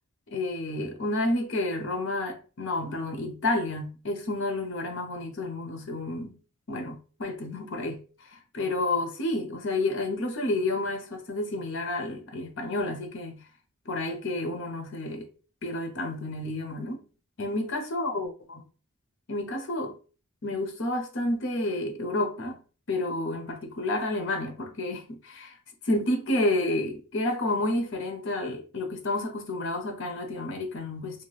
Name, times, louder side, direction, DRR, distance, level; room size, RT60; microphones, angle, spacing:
voice 1, 0.3-6.4 6.7-8.0 8.3-13.4 13.9-15.3 15.6-17.0 17.4-18.6 19.3-20.0 20.4-22.6 22.9-25.6 25.8-31.2, left 2 dB, 55° left, 0.7 m, -30 dB
2.9 x 2.3 x 3.1 m
head